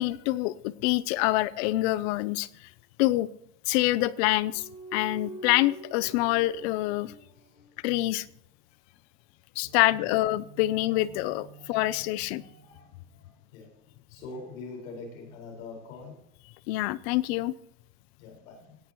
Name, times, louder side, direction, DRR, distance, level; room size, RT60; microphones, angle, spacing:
voice 1, 0.0-2.5 3.0-3.3 3.7-4.7 4.9-7.1 7.8-8.2 9.6-12.4 16.7-17.5, left 17 dB, 50° left, 20 dB, 0.5 m, -26 dB
sound 1, 4.5-8.2 9.6-13.4 14.2-15.4, right 3 dB, 40° right, 3.6 m, -48 dB
voice 2, 11.5-11.9 12.3-16.2 18.2-18.8, left 3 dB, 85° left, 1 dB, 4.7 m, -45 dB
17.5 x 9.7 x 3.0 m, 0.76 s
cardioid pair, 175°, 40 cm